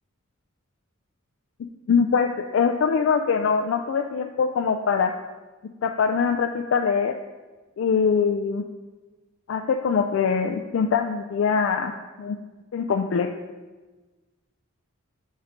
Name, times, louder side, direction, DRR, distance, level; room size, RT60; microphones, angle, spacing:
voice 1, 1.9-5.1 5.8-7.1 7.8-8.6 9.5-12.4 12.7-13.3, left 6 dB, 60° left, 5 dB, 0.3 m, -23 dB
5.6 x 4.4 x 5.0 m, 1.3 s
head